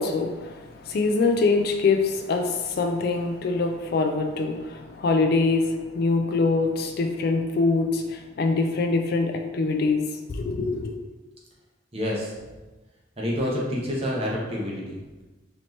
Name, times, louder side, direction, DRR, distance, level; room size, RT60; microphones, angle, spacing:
voice 1, 0.0-10.0 10.3-10.9, left 3 dB, 50° left, 4 dB, 0.3 m, -24 dB
voice 2, 11.9-12.3 13.2-15.0, left 1 dB, 30° right, -3 dB, 0.9 m, -28 dB
4.2 x 2.8 x 3.1 m, 1.2 s
head